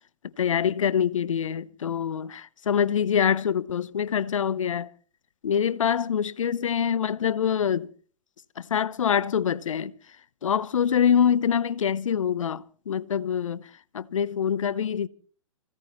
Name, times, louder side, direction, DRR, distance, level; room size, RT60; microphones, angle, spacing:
voice 1, 0.4-4.9 5.4-7.9 8.7-9.9 10.4-13.6 13.9-15.1, left 8 dB, 80° left, 0.9 m, -25 dB
25.5 x 16.5 x 3.1 m
hypercardioid pair, 125°, 17 cm